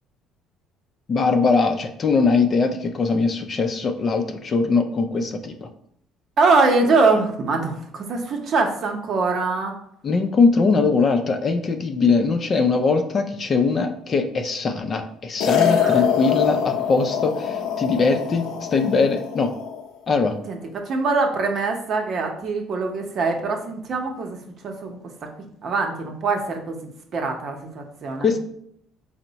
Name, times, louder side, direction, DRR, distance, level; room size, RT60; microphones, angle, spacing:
voice 1, 1.1-5.7 10.0-19.5 20.1-20.4 28.2-28.4, left 4 dB, 40° left, 6 dB, 0.5 m, -21 dB
voice 2, 6.4-9.7 15.8-16.0 20.5-24.4 24.6-25.0 25.6-28.3, right 3 dB, 50° right, 3 dB, 0.8 m, -23 dB
sound 1, 15.4-19.9, left 8 dB, 80° left, 0.6 m, -24 dB
4.4 x 2.1 x 3.9 m, 0.68 s
supercardioid pair, 90°, 0 cm